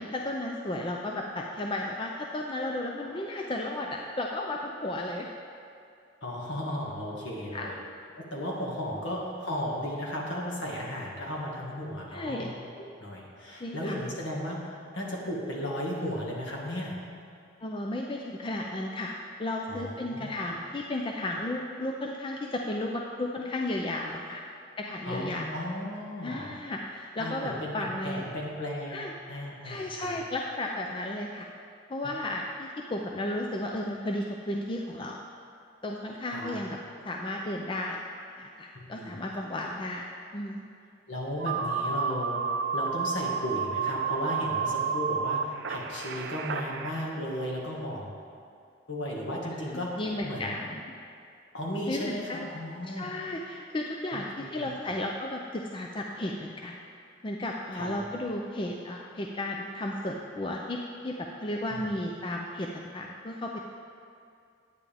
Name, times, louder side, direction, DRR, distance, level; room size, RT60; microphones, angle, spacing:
voice 1, 0.0-5.3 7.5-7.7 12.1-12.5 13.6-14.0 17.6-19.1 19.4-24.4 24.8-25.5 26.2-28.2 28.9-29.1 29.6-31.5 31.9-35.2 35.8-36.8 37.0-38.0 38.4-40.7 49.5-49.6 50.0-50.8 51.9-52.5 52.9-56.8 57.2-63.6, left 1 dB, 25° left, 0 dB, 0.4 m, -34 dB
voice 2, 6.2-7.7 8.2-12.5 13.0-17.0 19.7-20.5 25.0-26.5 27.2-30.2 32.0-32.1 36.3-36.5 38.7-39.2 41.1-48.2 48.9-50.5 51.5-53.1 54.1-54.6 57.7-58.0 61.7-61.9, left 1 dB, 65° left, -3 dB, 1.8 m, -35 dB
sound 1, 41.4-46.9, right 5 dB, 60° right, 0.5 m, -31 dB
9.8 x 9.6 x 3.5 m, 2.4 s
head